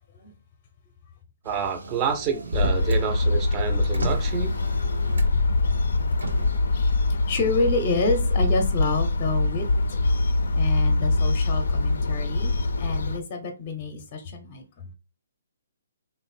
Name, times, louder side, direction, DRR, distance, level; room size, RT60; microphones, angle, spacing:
voice 1, 1.4-4.6, right 7 dB, 25° right, 0.5 m, -28 dB
Motor vehicle (road), 1.4-3.1 3.4-5.5 6.1-6.6, right 2 dB, 80° right, 0.7 m, -34 dB
sound 1, 2.5-13.2, left 2 dB, 75° left, 0.4 m, -23 dB
voice 2, 7.3-9.7 10.5-12.5 12.8-14.6, left 3 dB, 35° left, 0.6 m, -28 dB
3.1 x 2.1 x 4.1 m
hypercardioid pair, 140°, 0 cm